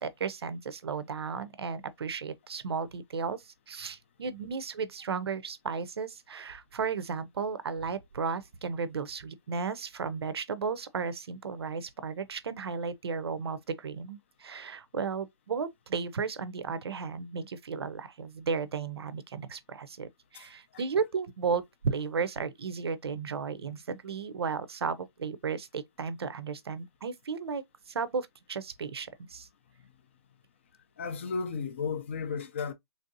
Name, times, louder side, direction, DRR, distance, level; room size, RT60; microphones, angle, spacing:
voice 1, 0.0-29.5, right 5 dB, 60° right, 0.5 m, -34 dB
voice 2, 20.3-20.8 29.8-29.9 31.0-32.7, left 5 dB, 25° left, 0.4 m, -35 dB
3.3 x 2.6 x 2.5 m
hypercardioid pair, 160°, 14 cm